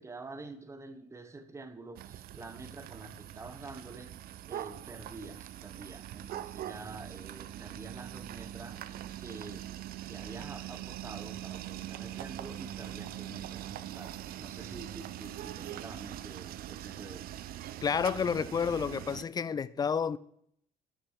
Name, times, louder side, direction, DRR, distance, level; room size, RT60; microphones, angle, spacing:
voice 1, 0.0-4.2 4.5-9.7 10.1-17.3, right 3 dB, 15° right, 0.8 m, -47 dB
sound 1, 2.0-19.2, right 12 dB, 60° right, 0.5 m, -42 dB
voice 2, 17.8-20.2, left 6 dB, 25° left, 0.4 m, -30 dB
6.5 x 6.0 x 6.4 m
cardioid pair, 110°, 17 cm